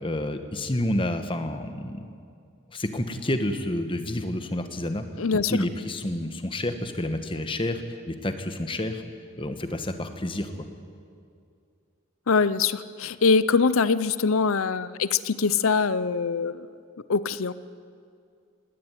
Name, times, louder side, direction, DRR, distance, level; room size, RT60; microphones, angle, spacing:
voice 1, 0.0-2.0 2.7-5.0 5.3-9.0 9.4-10.5, left 1 dB, 25° left, 8 dB, 1.3 m, -29 dB
voice 2, 5.2-5.6 12.3-16.7 17.1-17.5, left 5 dB, 70° left, 16 dB, 0.7 m, -23 dB
19.5 x 18.0 x 9.3 m, 2.3 s
head